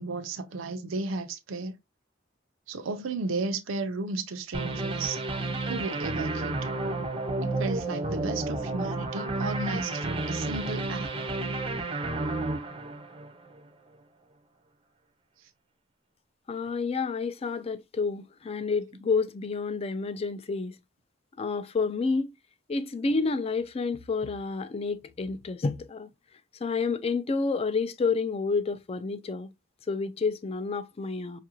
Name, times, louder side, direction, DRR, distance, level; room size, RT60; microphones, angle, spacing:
voice 1, 0.0-1.8 2.7-5.2 5.7-6.7 7.6-11.1, right 3 dB, 85° right, 0.5 m, -34 dB
sound 1, 4.5-13.6, right 2 dB, 25° right, 0.5 m, -31 dB
voice 2, 16.5-20.7 21.4-22.3 22.7-26.1 26.6-29.5 29.9-31.4, left 4 dB, 30° left, 0.4 m, -29 dB
5.4 x 2.4 x 2.9 m
head